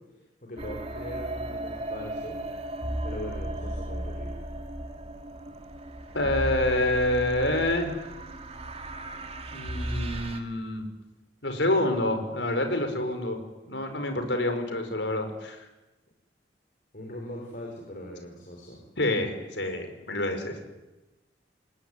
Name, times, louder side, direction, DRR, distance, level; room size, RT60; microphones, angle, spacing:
voice 1, 0.4-2.4 3.0-4.3 16.9-18.8, left 1 dB, 50° left, 0 dB, 5.8 m, -40 dB
sound 1, 0.6-10.4, right 1 dB, 35° right, 2.5 m, -35 dB
voice 2, 6.1-7.9 9.5-10.9 11.4-13.4 13.6-15.6 19.0-20.5, left 1 dB, 80° left, 6 dB, 5.2 m, -27 dB
28.0 x 19.0 x 9.9 m, 1.1 s
head